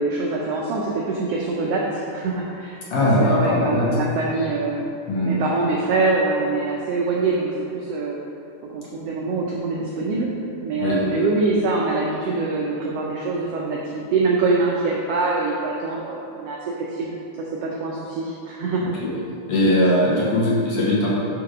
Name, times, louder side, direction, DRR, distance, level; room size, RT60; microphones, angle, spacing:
voice 1, 0.0-4.8 5.3-8.2 8.7-10.3 10.6-17.1 17.6-18.9, right 3 dB, 85° right, -3 dB, 1.4 m, -24 dB
voice 2, 2.9-3.9 5.1-5.4 10.8-11.0 18.8-19.2 19.5-21.1, left 1 dB, 60° left, -7 dB, 1.9 m, -20 dB
6.0 x 5.1 x 4.9 m, 2.6 s
omnidirectional pair, 3.5 m